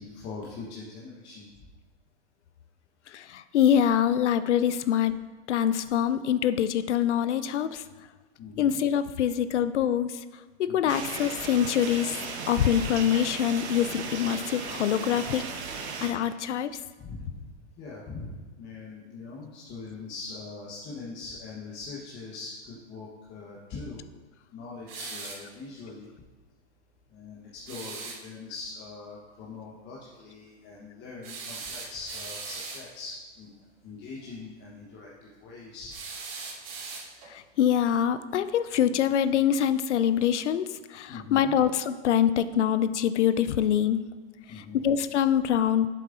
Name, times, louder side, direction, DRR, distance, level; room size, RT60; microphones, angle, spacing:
voice 1, 0.0-1.5 8.4-8.8 10.7-11.0 17.0-24.0 24.5-26.1 27.1-33.6 33.8-36.0 41.1-41.6 44.5-44.9, left 4 dB, 30° left, -5 dB, 1.2 m, -42 dB
voice 2, 3.1-5.1 5.5-7.8 8.6-10.2 10.6-12.2 12.5-15.4 16.0-16.7 37.3-44.0 44.5-45.9, left 9 dB, 80° left, 13 dB, 0.5 m, -25 dB
sound 1, 10.9-16.1, right 5 dB, 70° right, 1.1 m, -36 dB
sound 2, 24.9-25.5 27.7-28.2 31.2-32.9 35.9-37.3, right 4 dB, 35° right, 1.4 m, -39 dB
8.4 x 7.4 x 2.6 m, 1.3 s
hypercardioid pair, 115°, 34 cm